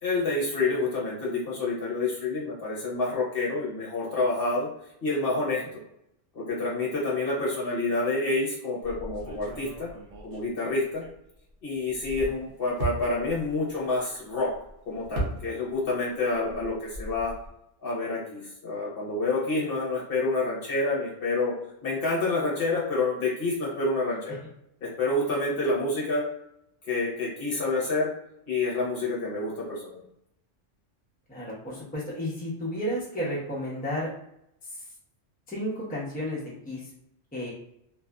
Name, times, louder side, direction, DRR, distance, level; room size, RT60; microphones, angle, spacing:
voice 1, 0.0-4.7 5.0-5.6 6.3-9.9 10.2-11.0 11.6-14.5 14.9-17.3 17.8-21.5 21.8-24.4 24.8-26.3 26.9-28.1 28.5-30.0, left 2 dB, 55° left, -5 dB, 0.9 m, -28 dB
sound 1, 8.8-11.5 11.9-15.9 16.2-17.5, right 1 dB, 55° right, 0.7 m, -38 dB
voice 2, 31.3-34.1 35.5-36.8 37.3-37.5, equal, 10° left, -7 dB, 0.7 m, -32 dB
2.6 x 2.5 x 2.2 m, 0.78 s
omnidirectional pair, 1.3 m